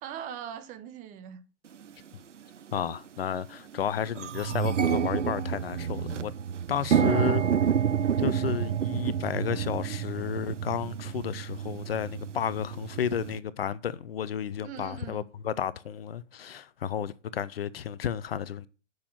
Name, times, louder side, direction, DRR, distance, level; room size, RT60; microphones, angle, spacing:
voice 1, 0.0-1.4 6.8-7.5 14.6-15.3, right 9 dB, 20° right, 1.0 m, -41 dB
sound 1, 1.8-1.9 2.7-2.9 3.3-3.4 3.7-13.4, right 8 dB, 75° right, 0.7 m, -29 dB
voice 2, 2.7-6.3 6.7-7.4 8.2-18.7, left 8 dB, 50° left, 0.7 m, -32 dB
8.5 x 6.5 x 7.2 m
figure-of-eight pair, 110°, 37 cm